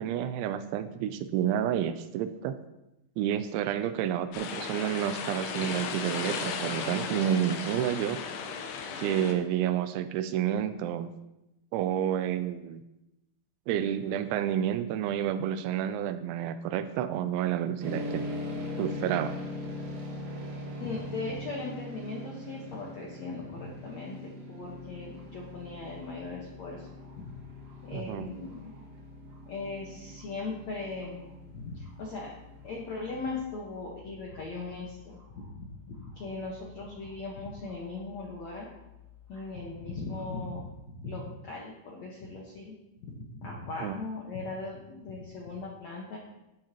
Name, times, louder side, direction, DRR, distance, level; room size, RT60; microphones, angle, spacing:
voice 1, 0.0-2.5 3.2-8.2 9.0-11.1 11.7-12.8 13.7-18.2 18.8-19.4 27.9-28.3 43.8-44.0, right 10 dB, 80° right, 11 dB, 2.9 m, -30 dB
sound 1, 4.3-9.3, left 5 dB, 70° left, 2.7 m, -35 dB
sound 2, 17.8-33.3, left 1 dB, 60° right, 3.9 m, -41 dB
voice 2, 20.8-26.9 27.2-27.3 27.8-28.7 29.5-32.3 32.6-38.7 39.3-42.7 43.1-46.2, left 3 dB, 90° left, -3 dB, 1.5 m, -39 dB
sound 3, 24.6-40.7, left 8 dB, 35° right, 1.3 m, -55 dB
15.5 x 8.6 x 3.0 m, 0.92 s
omnidirectional pair, 5.5 m